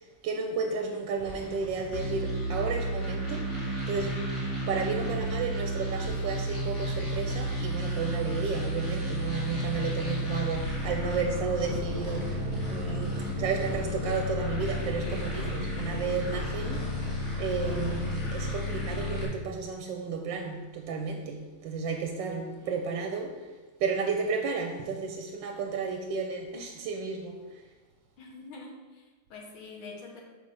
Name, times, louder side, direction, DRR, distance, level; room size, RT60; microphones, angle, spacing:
voice 1, 0.2-3.5 3.9-4.2 4.7-12.4 12.7-17.0 17.4-23.5 23.8-27.4, right 5 dB, 75° right, 1.3 m, -32 dB
sound 1, 1.2-18.4, left 1 dB, 90° left, 3.1 m, -44 dB
sound 2, 1.9-19.2, equal, 40° left, 2.6 m, -32 dB
voice 2, 4.9-5.2 22.6-22.8 28.2-30.2, left 3 dB, 75° left, 2.0 m, -46 dB
sound 3, 11.6-18.6, right 3 dB, 50° right, 1.0 m, -44 dB
5.3 x 5.0 x 6.4 m
omnidirectional pair, 2.2 m